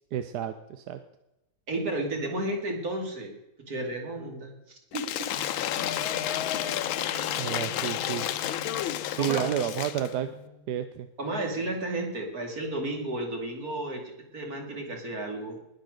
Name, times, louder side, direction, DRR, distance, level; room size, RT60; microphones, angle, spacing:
voice 1, 0.1-1.0 7.4-8.3 9.1-10.3 10.7-11.1, right 10 dB, 65° right, 9 dB, 1.1 m, -30 dB
voice 2, 1.7-3.3 3.7-5.3 9.2-9.4 11.2-15.6, right 2 dB, 45° right, 2 dB, 3.0 m, -33 dB
Cheering / Applause / Crowd, 4.9-10.1, left 12 dB, 85° left, 1.5 m, -31 dB
sound 1, 5.3-10.8, equal, 85° right, 4.2 m, -45 dB
20.0 x 6.7 x 6.4 m, 0.90 s
omnidirectional pair, 2.2 m